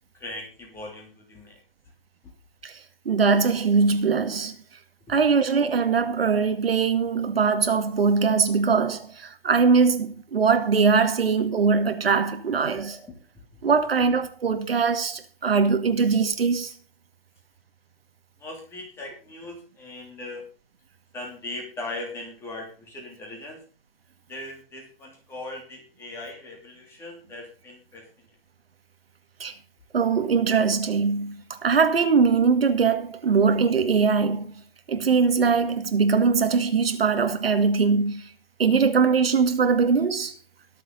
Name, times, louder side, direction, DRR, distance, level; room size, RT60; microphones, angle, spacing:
voice 1, 0.1-1.6 5.1-5.2 13.4-13.5 18.4-20.4 21.1-23.6 24.3-28.1, left 2 dB, 10° left, 2.9 m, -39 dB
voice 2, 3.1-4.5 5.1-13.0 13.6-16.7 29.4-29.5 29.9-34.5 34.9-38.2 38.6-40.4, right 5 dB, 75° right, 2.2 m, -21 dB
22.0 x 7.5 x 4.0 m
hypercardioid pair, 165°, 30 cm